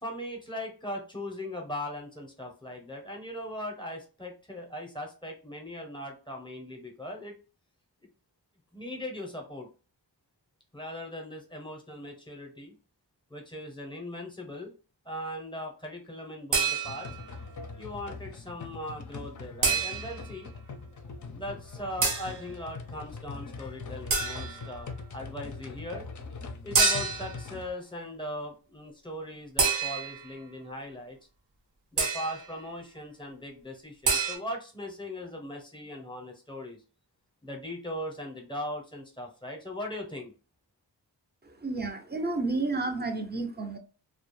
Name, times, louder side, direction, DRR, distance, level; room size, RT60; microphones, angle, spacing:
voice 1, 0.0-7.3 8.7-9.7 10.7-12.7 13.3-14.7 15.0-17.1 17.8-20.5 21.3-26.1 26.6-31.2 31.9-36.8 37.4-40.3, left 1 dB, 10° left, 1 dB, 0.7 m, -39 dB
sound 1, 16.5-17.2 19.6-20.3 22.0-22.4 24.1-24.7 26.7-27.4 29.6-30.3 32.0-32.4 34.0-34.4, right 4 dB, 80° right, 0.7 m, -27 dB
sound 2, 16.8-27.7, left 4 dB, 45° left, 0.4 m, -42 dB
voice 2, 41.4-43.8, right 3 dB, 25° right, 6 dB, 0.5 m, -31 dB
2.3 x 2.1 x 3.1 m, 0.34 s
wide cardioid pair, 75°, 43 cm